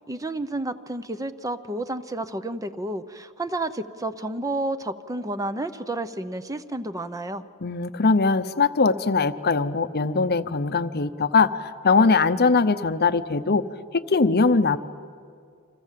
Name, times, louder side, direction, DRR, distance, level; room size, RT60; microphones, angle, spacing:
voice 1, 0.1-7.4, right 2 dB, 15° right, 11 dB, 0.8 m, -31 dB
voice 2, 7.6-13.6 13.9-14.8, left 4 dB, 45° left, 12 dB, 0.8 m, -21 dB
29.0 x 26.0 x 7.6 m, 2.2 s
head